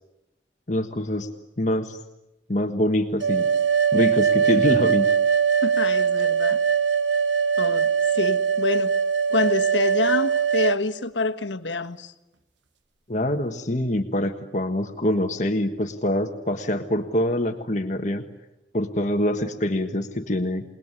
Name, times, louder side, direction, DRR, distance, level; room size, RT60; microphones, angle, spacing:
voice 1, 0.7-1.3 1.6-2.0 2.5-3.5 3.9-5.1 13.1-18.2 18.7-20.6, left 1 dB, 40° left, 5 dB, 1.5 m, -25 dB
sound 1, 3.2-10.8, right 7 dB, 85° right, 1.2 m, -21 dB
voice 2, 5.6-6.6 7.6-7.9 8.1-8.9 9.3-12.1, left 3 dB, 85° left, 7 dB, 1.4 m, -27 dB
28.5 x 20.0 x 9.8 m, 0.97 s
head